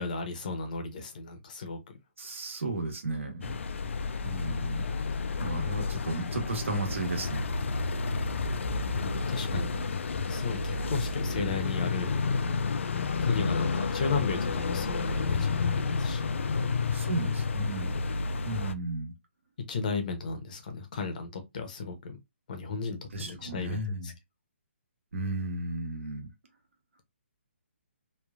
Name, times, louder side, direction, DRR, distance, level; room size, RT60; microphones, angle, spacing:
voice 1, 0.0-2.0 9.0-9.8 10.3-12.1 13.2-16.8 19.7-22.2 22.5-24.1, left 4 dB, 40° left, 0.7 m, -35 dB
voice 2, 2.2-3.6 4.2-4.8 5.4-7.4 9.5-9.6 16.9-17.9 18.4-19.1 23.1-24.1 25.1-26.3, right 2 dB, 80° right, 1.3 m, -34 dB
sound 1, 3.4-18.7, left 4 dB, 75° left, 0.4 m, -30 dB
3.1 x 2.2 x 2.3 m
hypercardioid pair, 165°, 7 cm